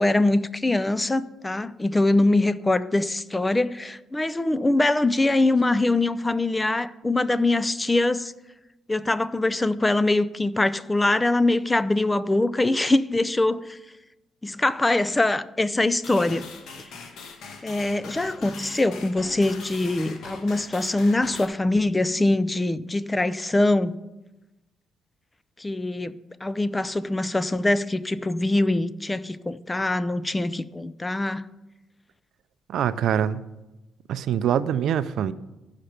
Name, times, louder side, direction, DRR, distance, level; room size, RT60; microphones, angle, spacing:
voice 1, 0.0-8.3 8.9-13.8 14.4-16.5 17.6-24.0 25.6-31.4, left 2 dB, 15° left, 0.5 m, -23 dB
sound 1, 16.0-21.5, left 4 dB, 75° left, 1.4 m, -41 dB
voice 2, 32.7-33.4 34.1-35.3, right 9 dB, 75° right, 0.5 m, -24 dB
14.5 x 5.7 x 5.0 m
cardioid pair, 90°, 0 cm